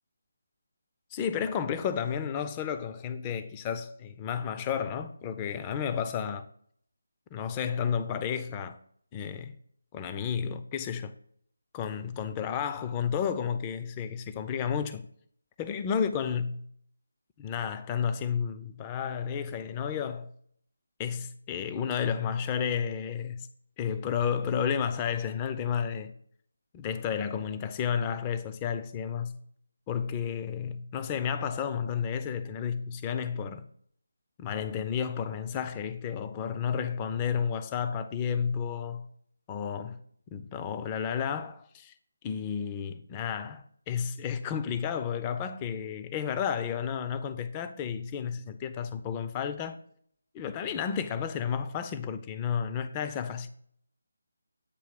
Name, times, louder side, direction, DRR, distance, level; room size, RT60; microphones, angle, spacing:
voice 1, 1.1-6.5 7.3-8.8 9.1-9.5 9.9-11.1 11.7-15.1 15.6-16.6 17.4-20.3 21.0-23.5 23.8-26.1 26.7-29.4 29.9-33.6 34.4-39.1 39.5-40.0 40.3-41.9 42.2-49.8 50.3-53.5, left 7 dB, 20° left, 0.4 m, -32 dB
8.3 x 2.9 x 5.7 m
figure-of-eight pair, 155°, 0 cm